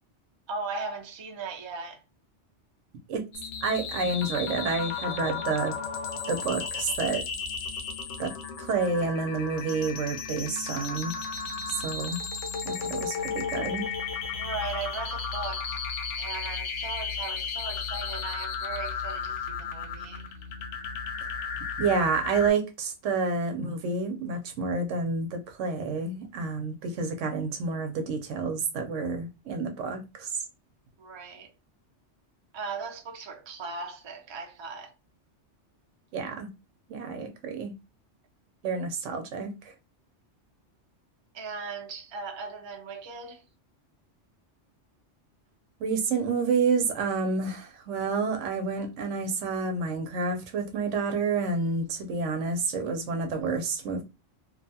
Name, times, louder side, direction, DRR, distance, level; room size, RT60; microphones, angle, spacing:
voice 1, 0.5-2.0 14.3-15.8 16.2-20.3 31.0-31.5 32.5-34.9 41.3-43.4, right 4 dB, 45° right, 0.3 m, -38 dB
sound 1, 3.3-22.5, left 6 dB, 85° left, 1.0 m, -34 dB
voice 2, 3.6-5.7 6.3-7.2 8.2-8.3 8.6-11.1 11.8-12.2 12.6-13.8 21.8-30.4 36.1-36.5 36.9-37.7 38.6-39.7 45.8-54.0, right 4 dB, 90° right, 1.0 m, -29 dB
2.7 x 2.3 x 2.7 m
omnidirectional pair, 1.2 m